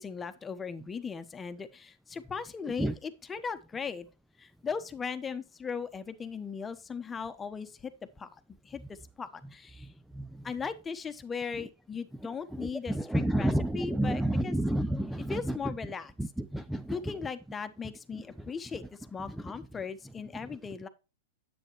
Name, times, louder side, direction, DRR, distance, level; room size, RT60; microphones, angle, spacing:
voice 1, 0.0-4.1 4.4-9.9 10.4-14.5 15.3-16.1 16.9-20.9, left 5 dB, 15° left, 1.0 m, -38 dB
voice 2, 10.1-10.4 12.5-15.7 16.2-17.0 18.1-18.2 19.3-19.4, right 1 dB, ahead, 0.4 m, -30 dB
9.9 x 7.8 x 3.0 m
hypercardioid pair, 125°, 0 cm